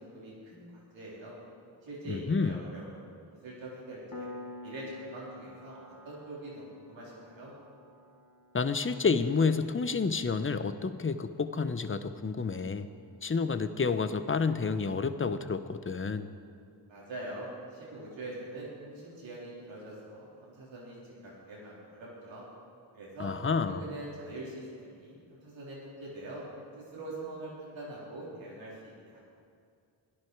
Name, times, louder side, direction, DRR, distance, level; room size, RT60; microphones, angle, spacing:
voice 1, 0.0-1.4 1.8-3.2 3.4-4.3 4.6-7.6 16.9-22.4 22.9-23.3 23.7-26.5 26.8-29.2, right 1 dB, 90° right, -6 dB, 3.8 m, -44 dB
voice 2, 2.1-2.6 8.5-12.9 13.2-16.3 23.2-23.8, left 4 dB, 30° left, 11 dB, 0.9 m, -29 dB
Piano, 4.1-14.5, left 2 dB, 45° left, 1.5 m, -51 dB
16.5 x 10.5 x 4.7 m, 2.3 s
cardioid pair, 45°, 44 cm